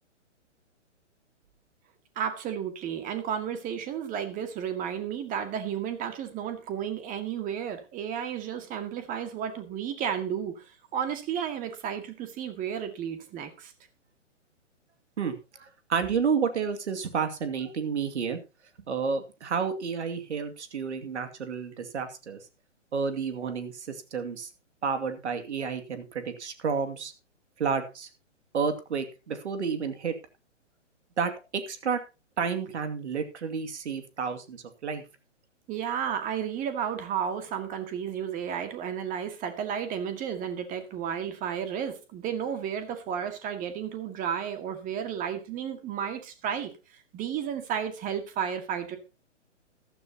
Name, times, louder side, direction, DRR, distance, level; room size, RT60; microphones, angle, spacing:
voice 1, 2.2-13.7 35.7-49.0, right 8 dB, 20° right, 8 dB, 2.0 m, -33 dB
voice 2, 15.2-18.4 18.9-22.4 22.9-24.5 24.8-27.1 27.6-28.1 28.5-30.1 31.2-32.0 32.4-35.0, right 6 dB, 65° right, 8 dB, 2.4 m, -30 dB
14.5 x 12.5 x 2.9 m, 0.30 s
figure-of-eight pair, 130°, 37 cm